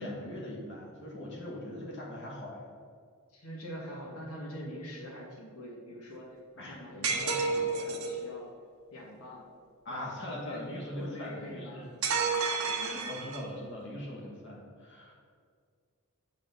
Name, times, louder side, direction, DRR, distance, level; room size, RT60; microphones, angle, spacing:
voice 1, 0.0-2.6 6.6-7.6 9.9-11.8 12.8-15.1, left 1 dB, 55° left, -3 dB, 1.8 m, -41 dB
voice 2, 3.3-8.5 8.9-9.5 9.9-12.9, equal, 80° left, -3 dB, 1.8 m, -45 dB
sound 1, 7.0-8.2 12.0-13.6, right 4 dB, 75° right, 1.0 m, -30 dB
8.3 x 3.9 x 6.8 m, 2.1 s
head